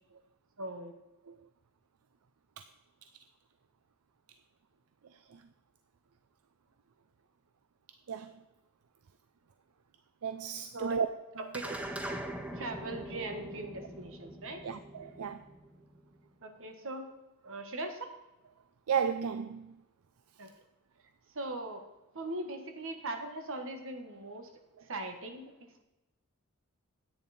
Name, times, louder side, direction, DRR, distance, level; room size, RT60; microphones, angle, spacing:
voice 1, 0.6-0.9 10.7-11.0 11.4-11.8 12.5-14.6 16.4-17.0 17.4-18.1 20.4-20.5 21.3-21.8 22.1-24.5 24.9-25.5, right 2 dB, 65° right, 1.5 m, -40 dB
voice 2, 10.2-11.1 11.4-11.5 14.6-15.4 18.9-19.8, right 7 dB, 80° right, 0.5 m, -33 dB
sound 1, 11.5-16.2, right 1 dB, 5° right, 0.7 m, -42 dB
10.5 x 8.9 x 4.2 m
head